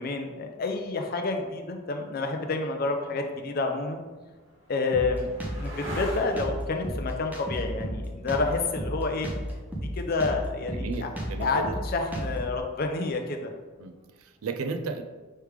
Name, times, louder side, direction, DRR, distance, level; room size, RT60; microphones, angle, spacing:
voice 1, 0.0-4.0 4.7-5.3 5.6-9.3 9.9-11.1 11.4-11.6 11.9-13.5, left 3 dB, 45° left, 4 dB, 0.4 m, -29 dB
sound 1, 3.8-11.2 13.5-14.1, equal, 60° right, 1.4 m, -44 dB
Drum kit, 4.9-12.6, equal, 10° right, 0.5 m, -33 dB
voice 2, 10.6-11.8 13.1-13.2 13.8-15.0, right 4 dB, 80° right, 7 dB, 0.4 m, -35 dB
3.3 x 3.2 x 4.8 m, 1.3 s
head